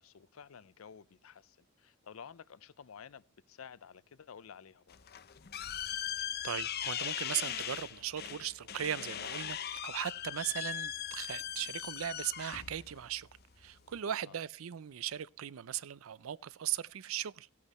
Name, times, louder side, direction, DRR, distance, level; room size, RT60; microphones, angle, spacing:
voice 1, 0.0-5.0 14.1-14.4, left 7 dB, 90° left, 0.5 m, -52 dB
sound 1, 4.9-14.0, left 10 dB, 50° left, 0.7 m, -40 dB
voice 2, 6.2-9.6 9.8-13.3 13.6-17.5, right 10 dB, 90° right, 0.5 m, -38 dB
16.0 x 8.5 x 4.1 m
head